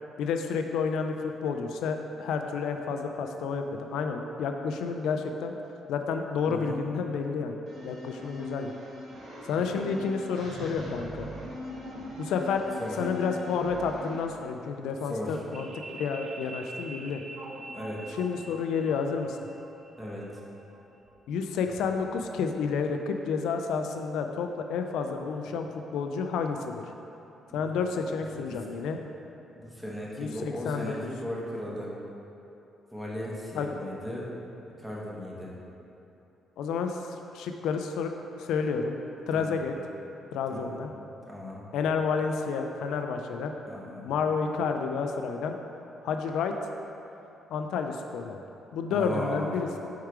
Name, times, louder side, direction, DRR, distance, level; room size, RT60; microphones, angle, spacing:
voice 1, 0.2-5.6 5.9-8.7 9.4-11.3 12.2-12.7 12.9-17.2 18.1-19.4 21.3-26.8 27.5-29.0 30.2-30.9 33.5-33.7 36.6-39.0 39.3-39.8 40.3-40.9 41.7-43.5 44.0-45.6 46.0-46.6 47.5-48.4 48.7-49.9, left 5 dB, 85° left, 5 dB, 0.3 m, -30 dB
voice 2, 6.5-6.8 12.8-13.0 15.1-15.4 17.7-18.2 20.0-20.3 28.5-29.0 29.5-31.9 32.9-34.3 34.8-35.5 39.3-39.6 40.5-40.8 41.3-41.6 43.7-44.1 48.9-49.5, equal, 5° right, -5 dB, 1.2 m, -36 dB
sound 1, 7.7-14.2, left 1 dB, 65° right, 1.2 m, -41 dB
sound 2, 15.5-22.4, right 2 dB, 40° right, 0.6 m, -45 dB
4.6 x 4.5 x 4.8 m, 2.9 s
cardioid pair, 90°, 0 cm